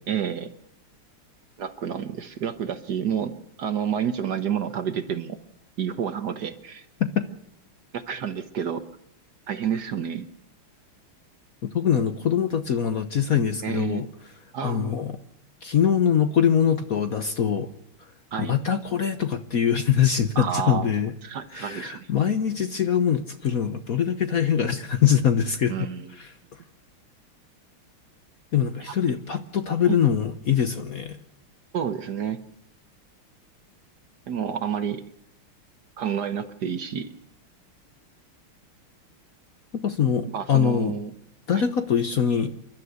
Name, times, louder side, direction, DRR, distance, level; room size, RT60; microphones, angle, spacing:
voice 1, 0.1-0.5 1.6-3.3 3.6-5.4 5.8-6.8 7.9-8.8 9.5-10.3 13.6-14.0 14.5-14.9 18.3-18.6 20.3-20.9 21.2-22.1 25.7-26.1 29.8-30.0 31.7-32.4 34.3-35.0 36.0-37.1 40.3-41.1 41.5-41.6, right 8 dB, 55° right, 10 dB, 1.4 m, -29 dB
voice 2, 11.6-14.1 14.6-15.2 15.6-17.7 18.4-21.1 21.5-25.7 26.1-26.3 28.5-31.2 39.8-40.9 41.5-42.5, left 8 dB, 50° left, 9 dB, 1.2 m, -23 dB
28.0 x 12.5 x 8.1 m, 0.74 s
omnidirectional pair, 2.4 m